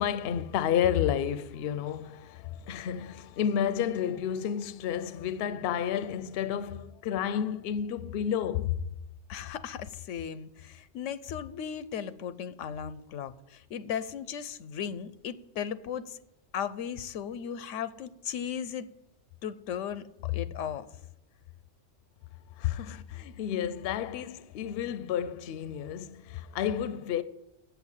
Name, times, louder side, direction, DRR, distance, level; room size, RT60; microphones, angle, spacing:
voice 1, 0.0-8.8 22.5-27.2, left 9 dB, 65° left, 0.7 m, -31 dB
voice 2, 9.3-16.2 16.5-18.9 19.4-20.9 22.9-23.0, left 8 dB, 90° left, 1.0 m, -36 dB
7.9 x 7.0 x 8.1 m
omnidirectional pair, 1.2 m